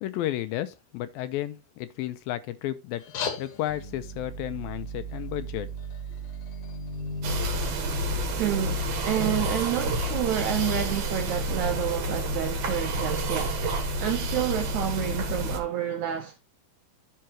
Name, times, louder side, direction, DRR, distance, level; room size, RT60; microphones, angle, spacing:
voice 1, 0.0-3.0 3.4-5.7, left 14 dB, 85° left, 2.4 m, -32 dB
sound 1, 2.9-7.9, left 6 dB, 60° left, 1.9 m, -41 dB
sound 2, 3.7-8.6, right 2 dB, 30° right, 1.2 m, -38 dB
sound 3, 7.2-15.6, right 1 dB, 55° right, 2.0 m, -29 dB
voice 2, 8.4-13.6 14.0-16.4, right 11 dB, 85° right, 1.7 m, -29 dB
12.5 x 5.7 x 2.9 m
omnidirectional pair, 4.2 m